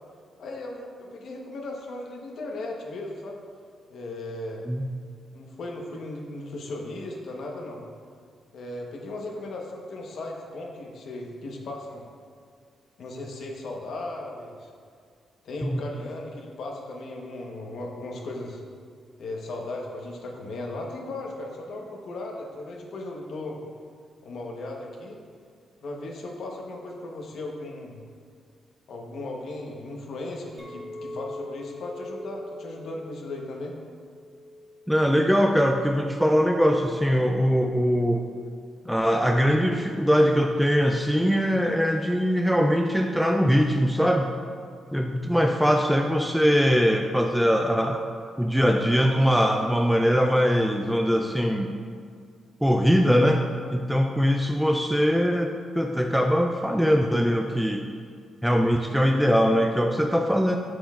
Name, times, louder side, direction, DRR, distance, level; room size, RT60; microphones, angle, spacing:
voice 1, 0.4-3.4 3.9-4.6 5.3-7.8 8.5-12.1 13.0-14.7 15.4-18.6 19.2-23.6 24.2-25.2 25.8-28.0 28.9-33.8, left 2 dB, 70° left, 0 dB, 1.0 m, -36 dB
Chink clink, 30.6-35.8, left 1 dB, 20° right, 1.5 m, -42 dB
voice 2, 34.9-38.2 38.9-44.3 44.9-48.0 48.4-51.7 52.6-53.4 53.7-57.9 58.4-60.6, equal, ahead, 3 dB, 0.3 m, -22 dB
7.6 x 6.3 x 2.4 m, 2.1 s
cardioid pair, 90°, 0 cm